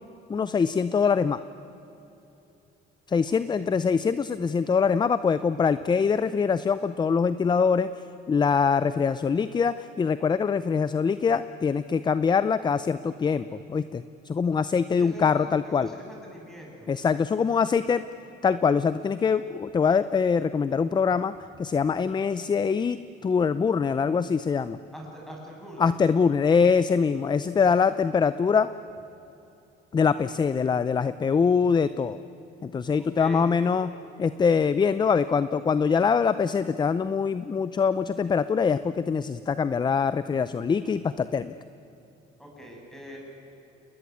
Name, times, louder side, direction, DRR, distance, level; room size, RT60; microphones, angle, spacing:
voice 1, 0.3-1.4 3.1-7.9 8.3-15.9 16.9-18.0 18.4-21.3 21.6-24.8 25.8-28.7 29.9-32.2 32.6-33.9 34.2-41.5, left 6 dB, 20° left, 14 dB, 0.6 m, -23 dB
voice 2, 3.2-3.7 15.0-16.9 24.9-25.9 33.0-33.5 42.4-43.3, equal, ahead, -1 dB, 7.9 m, -43 dB
28.5 x 20.5 x 9.6 m, 2.9 s
cardioid pair, 130°, 19 cm